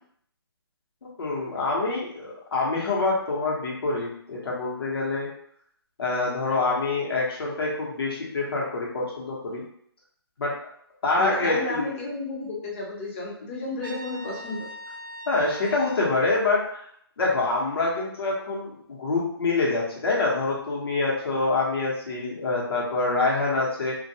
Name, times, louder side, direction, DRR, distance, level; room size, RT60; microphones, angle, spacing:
voice 1, 1.0-5.3 6.0-9.6 10.4-10.6 11.0-11.9 15.3-16.9 17.2-23.9, left 3 dB, 65° left, -4 dB, 1.0 m, -26 dB
voice 2, 11.2-14.6, left 2 dB, 30° left, -3 dB, 0.7 m, -32 dB
Trumpet, 13.8-16.1, left 1 dB, 55° right, 0.5 m, -40 dB
2.4 x 2.2 x 2.7 m, 0.66 s
figure-of-eight pair, 150°, 13 cm